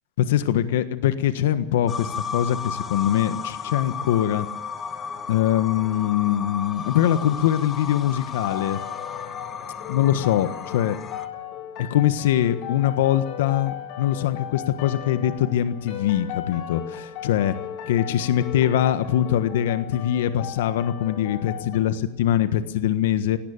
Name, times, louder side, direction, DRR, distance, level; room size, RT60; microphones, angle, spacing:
voice 1, 0.2-4.5 5.3-8.8 9.9-11.0 11.8-17.6 17.9-23.4, left 11 dB, 85° left, 12 dB, 1.4 m, -23 dB
sound 1, 1.9-11.3, left 6 dB, 20° left, 1.3 m, -34 dB
sound 2, 8.4-21.8, left 10 dB, 45° left, 6.6 m, -37 dB
18.0 x 18.0 x 9.0 m, 0.92 s
supercardioid pair, 165°, 0 cm